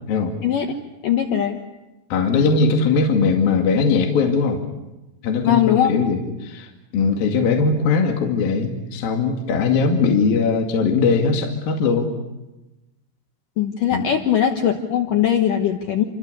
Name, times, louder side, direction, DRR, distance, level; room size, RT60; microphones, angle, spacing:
voice 1, 1.0-1.6 5.4-5.9 13.6-16.0, left 10 dB, 80° left, 4 dB, 1.9 m, -20 dB
voice 2, 2.1-4.6 5.2-12.2 13.9-14.0, left 4 dB, 55° left, 2 dB, 3.5 m, -20 dB
29.0 x 25.0 x 6.9 m, 1.0 s
omnidirectional pair, 5.8 m